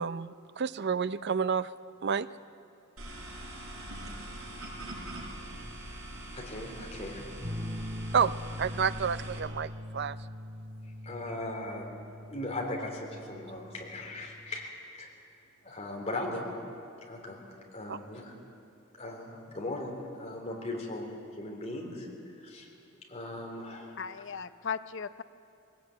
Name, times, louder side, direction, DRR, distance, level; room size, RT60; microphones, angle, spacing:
voice 1, 0.0-1.7 2.0-2.3 8.1-8.3 8.6-10.2 17.9-18.0, right 6 dB, 50° right, 15 dB, 0.5 m, -29 dB
sound 1, 3.0-9.4, right 1 dB, 75° right, 5.6 m, -43 dB
voice 2, 6.3-7.2 11.0-11.9 12.3-15.1 15.6-16.4 17.1-18.3 18.9-22.1 22.4-22.7 23.1-24.0, left 1 dB, 30° left, 0 dB, 3.5 m, -38 dB
sound 2, 7.4-14.7, left 1 dB, 30° right, 1.1 m, -42 dB
voice 3, 24.0-25.2, left 6 dB, 55° left, 12 dB, 0.6 m, -37 dB
20.0 x 18.5 x 8.9 m, 2.5 s
head